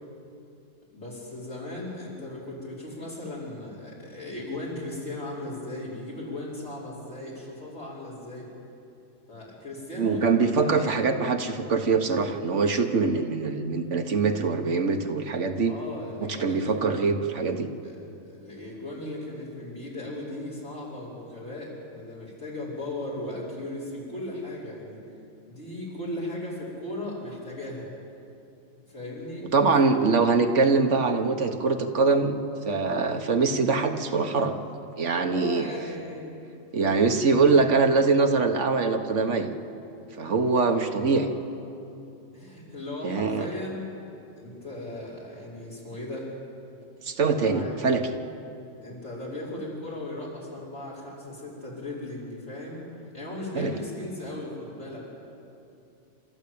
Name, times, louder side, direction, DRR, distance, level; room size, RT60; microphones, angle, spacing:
voice 1, 0.9-8.5 9.3-10.9 11.9-12.2 15.7-16.9 17.7-25.0 25.5-27.9 28.9-29.5 29.8-30.1 34.0-34.2 35.3-36.2 40.5-41.4 42.3-43.8 44.4-46.3 47.3-47.8 48.8-52.8 53.1-55.1, left 1 dB, 65° left, -6 dB, 5.8 m, -37 dB
voice 2, 10.0-15.7 16.2-17.7 29.5-32.4 32.6-34.6 35.0-35.7 36.7-39.5 40.2-41.3 43.0-43.5 47.0-48.1 53.5-53.7, right 4 dB, 75° right, 6 dB, 1.6 m, -23 dB
28.5 x 13.5 x 8.6 m, 2.7 s
omnidirectional pair, 1.3 m